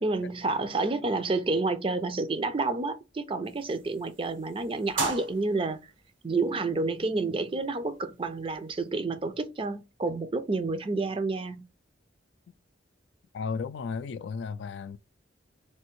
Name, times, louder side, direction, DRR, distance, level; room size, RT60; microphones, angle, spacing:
voice 1, 0.0-5.8 6.2-11.6, right 3 dB, 30° right, 0.4 m, -29 dB
sound 1, 3.4-8.9, right 3 dB, 85° right, 1.2 m, -40 dB
voice 2, 13.3-15.0, left 5 dB, 65° left, 0.3 m, -34 dB
3.3 x 2.6 x 3.0 m
head